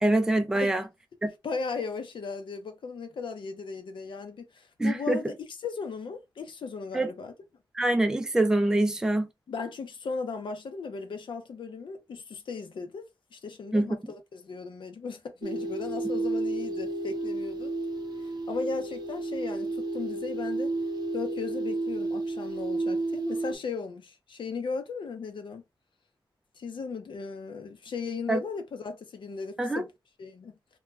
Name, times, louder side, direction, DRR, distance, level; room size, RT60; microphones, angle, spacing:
voice 1, 0.0-0.8 1.2-1.3 4.8-5.2 6.9-7.1 7.7-9.3 13.7-14.0 28.3-28.4 29.6-29.8, right 1 dB, 5° right, 0.4 m, -24 dB
voice 2, 1.4-5.3 5.6-7.3 9.5-13.0 13.3-17.7 18.2-20.7 21.1-25.6 26.6-29.9 30.2-30.6, left 5 dB, 80° left, 0.6 m, -36 dB
sound 1, 15.4-23.6, right 2 dB, 55° right, 0.5 m, -31 dB
2.2 x 2.2 x 3.1 m
wide cardioid pair, 110°, 8 cm